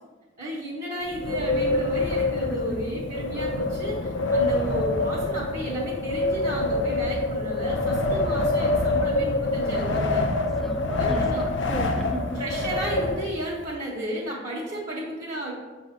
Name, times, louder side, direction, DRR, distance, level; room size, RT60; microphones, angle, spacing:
voice 1, 0.4-10.2 11.0-11.5 12.3-15.5, right 1 dB, 45° right, -6 dB, 1.1 m, -33 dB
Wind, 1.0-13.7, left 2 dB, 65° left, 0.5 m, -26 dB
voice 2, 2.5-2.9 10.6-12.7, equal, ahead, 3 dB, 0.4 m, -36 dB
7.1 x 2.7 x 4.9 m, 1.2 s
head